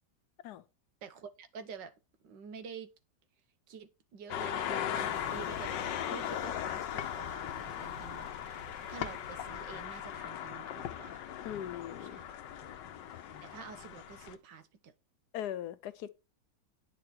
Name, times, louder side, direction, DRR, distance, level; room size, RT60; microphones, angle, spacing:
voice 1, 1.0-1.9 2.2-2.9 3.7-8.6 8.9-11.3 12.0-12.3 13.4-14.9, right 6 dB, 85° right, 1.8 m, -48 dB
sound 1, 4.3-14.3, left 10 dB, 85° left, 1.5 m, -38 dB
sound 2, 4.9-10.2, right 1 dB, 65° right, 3.3 m, -55 dB
sound 3, 7.2-14.4, left 3 dB, 15° right, 2.1 m, -60 dB
voice 2, 11.4-12.2 15.3-16.1, left 10 dB, 70° left, 1.2 m, -40 dB
9.5 x 5.9 x 4.5 m
omnidirectional pair, 1.9 m